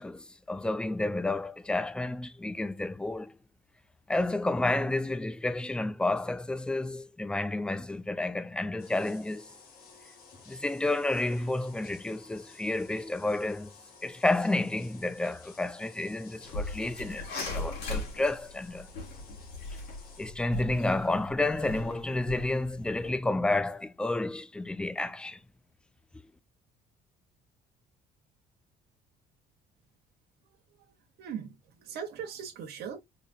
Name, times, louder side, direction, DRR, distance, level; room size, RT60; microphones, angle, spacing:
voice 1, 0.0-3.3 4.1-9.5 10.5-13.7 14.0-18.9 20.2-25.4, left 2 dB, 5° left, 0.3 m, -30 dB
sound 1, 8.8-20.3, left 5 dB, 65° left, 1.5 m, -54 dB
sound 2, 16.4-23.1, left 2 dB, 85° left, 2.1 m, -39 dB
voice 2, 31.2-33.0, right 7 dB, 75° right, 0.9 m, -39 dB
4.1 x 2.7 x 2.5 m
cardioid pair, 110°, 17 cm